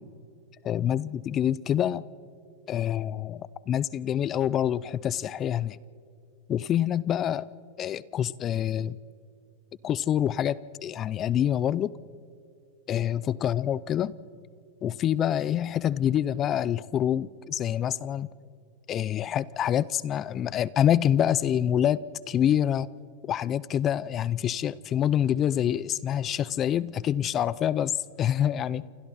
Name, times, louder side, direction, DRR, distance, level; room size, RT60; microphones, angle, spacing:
voice 1, 0.6-2.0 2.7-5.8 6.5-7.5 7.8-9.0 9.8-11.9 12.9-14.1 14.8-18.3 18.9-22.9 23.3-27.9 28.2-28.8, left 10 dB, 30° left, 21 dB, 0.5 m, -26 dB
28.5 x 26.5 x 4.2 m, 2.4 s
supercardioid pair, 125°, 0 cm